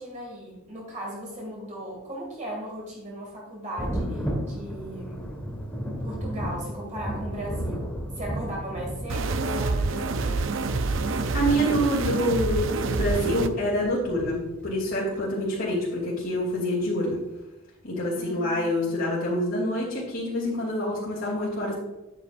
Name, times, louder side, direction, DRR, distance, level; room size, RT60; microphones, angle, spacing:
voice 1, 0.0-5.3 6.0-10.6 18.1-18.9, right 1 dB, 35° right, -3 dB, 2.4 m, -37 dB
Thunder, 3.8-15.2 16.5-16.6 17.1-17.2, equal, 5° left, 1.7 m, -35 dB
sound 1, 9.1-13.5, right 3 dB, 60° right, 0.6 m, -27 dB
voice 2, 11.1-17.2 17.8-21.7, equal, 60° left, -8 dB, 3.1 m, -26 dB
10.0 x 9.4 x 2.6 m, 1.0 s
head